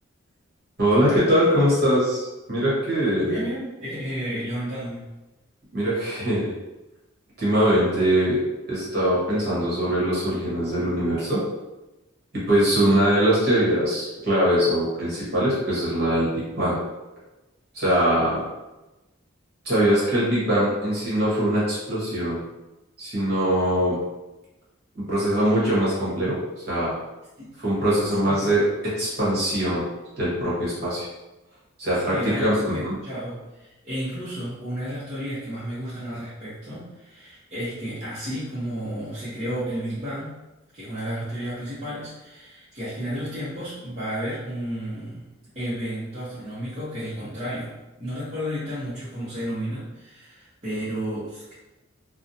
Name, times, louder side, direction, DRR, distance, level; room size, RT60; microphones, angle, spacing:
voice 1, 0.8-3.4 5.7-6.5 7.4-8.4 8.7-11.4 12.5-16.8 17.7-18.5 19.6-22.4 23.0-24.0 24.9-26.3 26.7-27.0 27.6-28.7 29.0-29.8 30.2-31.1 31.8-32.9, equal, 50° right, -8 dB, 1.1 m, -22 dB
voice 2, 3.2-5.1 27.4-27.6 28.2-28.5 31.9-40.5 40.7-51.5, equal, 30° right, -13 dB, 0.7 m, -32 dB
2.5 x 2.0 x 2.7 m, 1.0 s
head